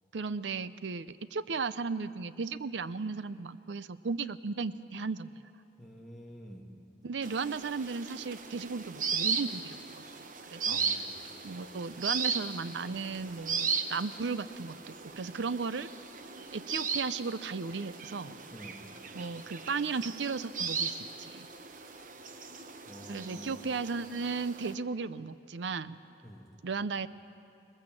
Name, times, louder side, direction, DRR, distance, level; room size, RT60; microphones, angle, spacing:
voice 1, 0.1-5.3 7.0-9.8 10.5-10.8 11.4-15.9 16.5-18.4 19.1-21.5 23.1-26.0 26.6-27.1, right 4 dB, 85° right, 15 dB, 0.6 m, -35 dB
voice 2, 5.8-6.6 10.7-11.2 18.5-18.8 22.9-23.7 26.2-26.5, equal, ahead, 0 dB, 2.0 m, -48 dB
sound 1, 7.2-24.7, right 5 dB, 45° right, 1.0 m, -37 dB
21.0 x 20.5 x 7.5 m, 2.9 s
head